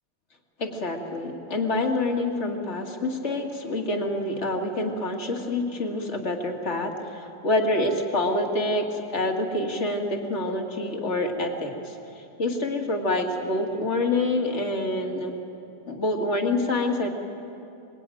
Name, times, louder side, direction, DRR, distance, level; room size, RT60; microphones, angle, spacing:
voice 1, 0.6-15.3 15.9-17.1, left 2 dB, 35° left, 2 dB, 2.3 m, -27 dB
24.5 x 21.5 x 9.2 m, 2.8 s
omnidirectional pair, 2.3 m